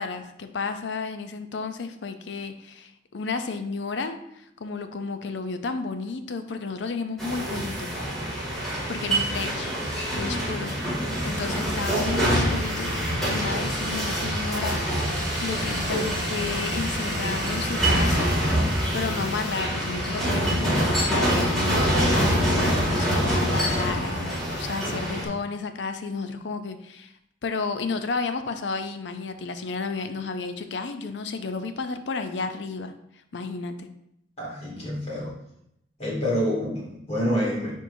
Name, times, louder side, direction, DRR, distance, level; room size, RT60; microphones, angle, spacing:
voice 1, 0.0-7.9 8.9-18.4 18.9-27.1 27.4-33.9, left 4 dB, 75° left, 8 dB, 0.5 m, -32 dB
sound 1, 7.2-25.2, equal, ahead, 2.2 m, -25 dB
voice 2, 34.4-35.3 36.0-37.7, equal, 35° left, -5 dB, 2.3 m, -27 dB
9.2 x 4.5 x 2.6 m, 0.77 s
head